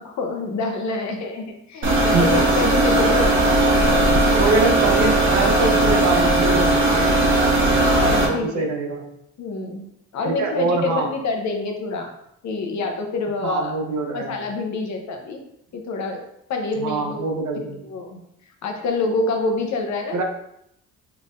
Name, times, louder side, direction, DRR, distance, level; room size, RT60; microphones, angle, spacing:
voice 1, 0.1-4.4 7.8-8.7 9.4-9.9 10.1-12.1 12.4-13.7 14.1-15.4 15.7-16.2 16.5-17.3 17.6-18.2 18.6-20.2, left 3 dB, 65° left, 3 dB, 0.8 m, -27 dB
sound 1, 1.8-8.3, right 2 dB, 40° right, 1.1 m, -18 dB
voice 2, 4.4-7.3 8.2-9.0 10.2-11.1 13.4-14.4 16.8-17.8 20.1-20.2, right 3 dB, 70° right, 3 dB, 0.8 m, -24 dB
4.2 x 3.3 x 2.5 m, 0.77 s
cardioid pair, 90°, 30 cm